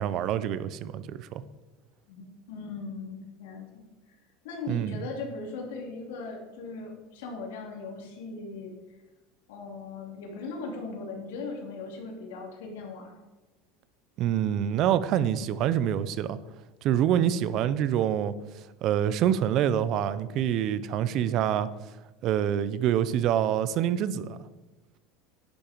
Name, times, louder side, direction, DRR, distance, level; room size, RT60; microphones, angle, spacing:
voice 1, 0.0-1.4 4.7-5.0 14.2-16.4 16.8-18.3 18.8-21.7 22.2-24.4, right 10 dB, 40° right, 15 dB, 0.6 m, -26 dB
voice 2, 2.1-3.8 4.4-8.7 9.5-13.1, left 3 dB, 90° left, 0 dB, 3.1 m, -38 dB
10.5 x 8.7 x 4.5 m, 1.1 s
supercardioid pair, 165°, 0 cm